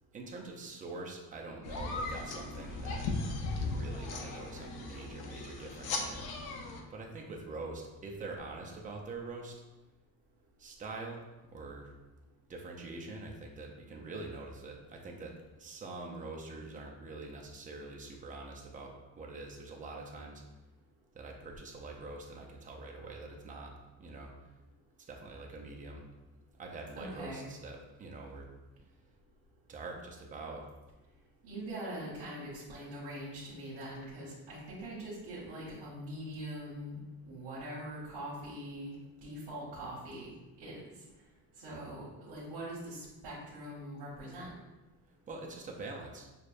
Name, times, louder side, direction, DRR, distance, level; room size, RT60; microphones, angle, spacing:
voice 1, 0.1-3.1 3.5-6.3 6.9-9.6 10.6-11.2 11.5-12.0 12.5-20.4 21.1-23.7 24.0-24.3 25.1-26.1 26.6-28.5 29.7-30.7 45.3-46.3, right 3 dB, 20° right, 0 dB, 0.4 m, -44 dB
sound 1, 1.6-6.8, left 3 dB, 75° left, 0.6 m, -37 dB
voice 2, 27.0-27.5 31.4-37.0 37.2-38.9 39.2-40.3 40.6-40.9 41.6-44.5, right 1 dB, 85° right, -7 dB, 1.1 m, -42 dB
6.3 x 2.1 x 2.5 m, 1.1 s
cardioid pair, 165°, 38 cm